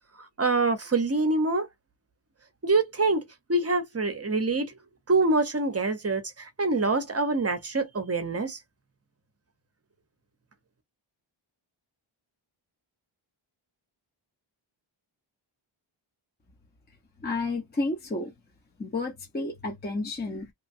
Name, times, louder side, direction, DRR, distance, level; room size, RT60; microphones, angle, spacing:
voice 1, 0.4-1.7 2.6-4.7 5.1-8.6, right 3 dB, 30° right, 0.7 m, -25 dB
voice 2, 17.2-18.3 18.8-20.5, left 2 dB, 20° left, 0.7 m, -31 dB
2.9 x 2.2 x 2.6 m
wide cardioid pair, 120°, 49 cm